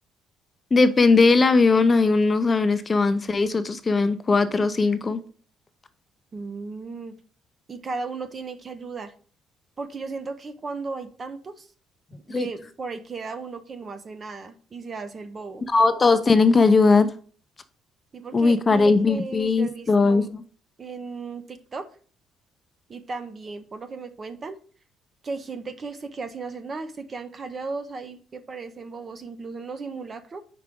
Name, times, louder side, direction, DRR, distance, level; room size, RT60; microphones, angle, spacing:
voice 1, 0.7-5.2 12.3-12.5 15.7-17.1 18.3-20.4, left 3 dB, 20° left, 11 dB, 0.5 m, -19 dB
voice 2, 6.3-7.2 7.7-9.1 9.8-11.7 12.1-15.6 18.1-20.3 20.8-21.9 22.9-24.6 25.2-30.4, right 4 dB, 30° right, 11 dB, 0.6 m, -36 dB
4.9 x 4.6 x 5.2 m, 0.43 s
cardioid pair, 145°, 0 cm